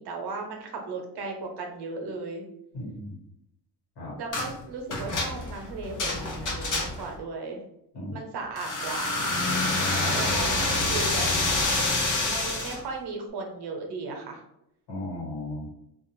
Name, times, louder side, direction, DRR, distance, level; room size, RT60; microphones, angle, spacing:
voice 1, 0.0-2.4 4.2-7.6 8.1-9.4 10.1-11.3 12.2-14.4, right 3 dB, 75° right, 2 dB, 0.7 m, -36 dB
voice 2, 2.7-3.1 4.0-4.1 7.9-8.2 10.0-10.2 14.9-15.7, left 1 dB, 85° left, -4 dB, 1.5 m, -35 dB
sound 1, 4.3-4.5 4.9-7.2 8.6-12.8, left 2 dB, 50° left, 0.7 m, -27 dB
2.4 x 2.3 x 3.0 m, 0.81 s
cardioid pair, 105°, 40 cm